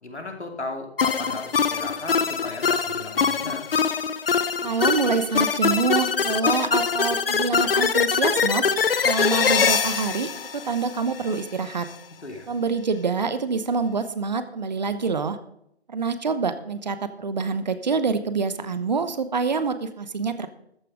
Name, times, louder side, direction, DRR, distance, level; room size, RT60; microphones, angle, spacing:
voice 1, 0.0-3.6 12.2-12.5, left 2 dB, 85° left, 3 dB, 2.8 m, -36 dB
sound 1, 1.0-11.4, left 6 dB, 60° left, 0.8 m, -23 dB
voice 2, 4.6-8.6 9.0-11.9 12.5-15.4 15.9-20.5, right 4 dB, 40° right, 12 dB, 0.9 m, -26 dB
13.5 x 9.0 x 4.8 m, 0.76 s
figure-of-eight pair, 155°, 33 cm